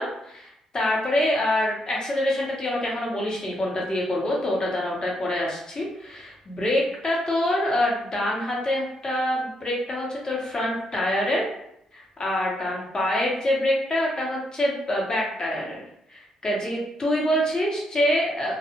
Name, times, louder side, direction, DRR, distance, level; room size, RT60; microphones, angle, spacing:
voice 1, 0.0-11.5 11.9-15.8 16.1-18.6, left 1 dB, 35° left, -4 dB, 1.2 m, -26 dB
2.5 x 2.3 x 2.9 m, 0.78 s
hypercardioid pair, 55°, 2 cm